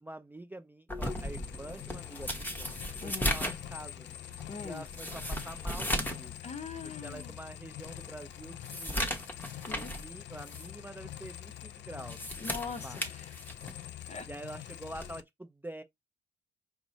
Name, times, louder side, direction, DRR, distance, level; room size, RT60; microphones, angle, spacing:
voice 1, 0.0-2.7 3.0-4.1 4.6-6.4 6.8-9.1 9.7-12.3 12.8-13.0 14.3-15.8, right 1 dB, 10° right, 0.5 m, -46 dB
sound 1, 0.9-6.3 6.6-6.7 7.3-7.4 7.8-10.1 10.4-10.7 11.9-13.9 14.9-15.2, equal, 10° left, 0.9 m, -36 dB
sound 2, 1.0-15.2, left 12 dB, 65° left, 0.4 m, -45 dB
voice 2, 3.0-3.4 4.5-4.8 6.4-7.3 9.7-9.9 12.4-13.5 14.1-14.3, left 5 dB, 35° left, 0.8 m, -42 dB
4.7 x 2.1 x 4.0 m
cardioid pair, 90°, 20 cm